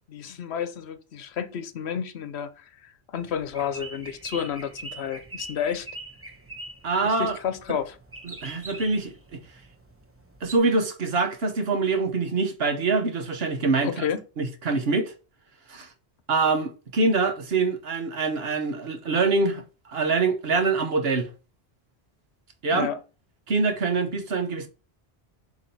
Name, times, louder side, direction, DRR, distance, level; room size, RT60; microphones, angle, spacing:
voice 1, 0.1-5.9 7.0-8.0 13.8-14.2 22.7-23.0, left 8 dB, 75° left, 1.0 m, -31 dB
sound 1, 3.2-10.6, right 2 dB, 15° right, 0.8 m, -43 dB
voice 2, 6.8-7.4 8.2-9.4 10.4-14.1 14.4-15.1 15.7-15.9 16.3-19.6 19.9-21.3 22.6-22.9 23.5-24.7, right 3 dB, 65° right, 1.2 m, -24 dB
7.2 x 3.1 x 5.4 m
omnidirectional pair, 1.1 m